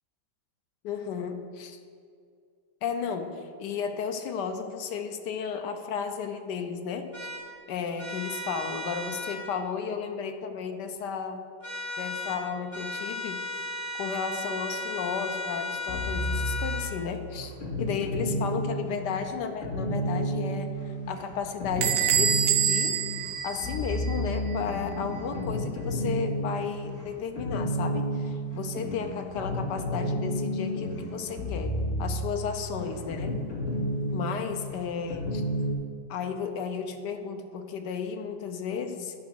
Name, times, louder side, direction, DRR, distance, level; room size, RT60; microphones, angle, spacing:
voice 1, 0.8-1.8 2.8-7.3 7.7-11.4 12.0-13.4 14.0-17.5 17.8-20.7 21.1-23.0 23.4-31.7 32.0-33.4 34.1-35.4 36.1-39.1, left 6 dB, 70° left, 7 dB, 1.2 m, -33 dB
sound 1, 7.1-7.4 8.0-9.4 11.6-12.4 12.7-16.9, left 2 dB, 30° right, 2.8 m, -35 dB
sound 2, 15.9-35.7, equal, 40° left, 2.2 m, -32 dB
Bell / Door, 21.8-24.3, right 8 dB, 75° right, 0.7 m, -26 dB
9.5 x 5.0 x 6.1 m, 2.3 s
omnidirectional pair, 2.0 m